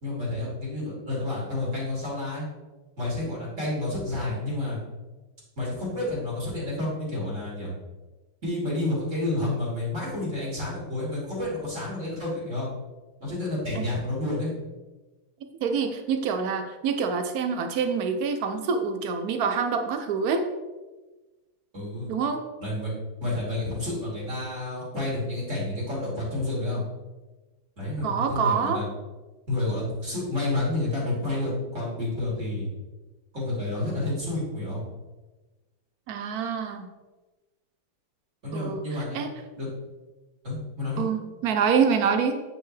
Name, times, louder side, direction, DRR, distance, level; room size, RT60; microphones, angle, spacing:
voice 1, 0.0-2.5 3.0-4.8 5.6-7.7 8.4-12.7 13.2-14.5 21.7-22.1 22.6-22.9 23.2-26.8 27.8-28.9 29.5-32.7 33.3-34.8 38.4-39.2 39.6-39.7 40.4-41.0, left 2 dB, 35° right, -6 dB, 3.0 m, -30 dB
voice 2, 15.6-20.4 22.1-22.5 28.0-28.8 36.1-36.9 38.5-38.8 39.1-39.3 41.0-42.4, right 6 dB, 85° right, 7 dB, 0.8 m, -26 dB
9.3 x 5.7 x 3.3 m, 1.2 s
omnidirectional pair, 2.3 m